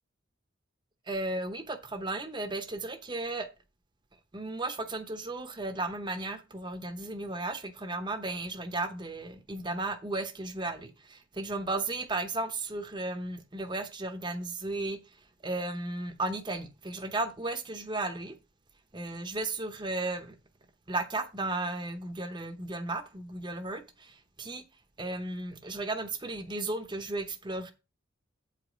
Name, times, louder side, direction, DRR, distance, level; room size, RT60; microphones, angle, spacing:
voice 1, 1.1-3.5 4.3-15.0 15.4-18.4 18.9-20.3 20.9-24.6 25.0-27.7, right 2 dB, 25° right, 0.8 m, -35 dB
8.1 x 5.0 x 5.1 m
head